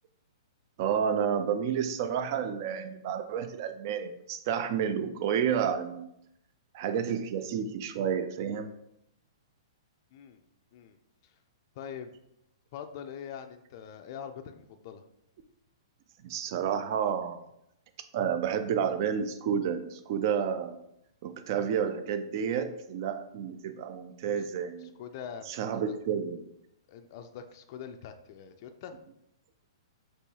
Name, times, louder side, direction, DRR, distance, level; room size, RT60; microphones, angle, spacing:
voice 1, 0.8-6.1 6.7-8.7 16.2-17.4 18.1-20.8 21.2-24.9 25.5-26.4, right 8 dB, 45° right, 9 dB, 0.4 m, -30 dB
voice 2, 11.8-12.2 12.7-15.0 24.8-26.0 26.9-28.9, left 8 dB, 40° left, 6 dB, 0.4 m, -43 dB
6.1 x 3.1 x 2.8 m, 0.79 s
hypercardioid pair, 155°, 3 cm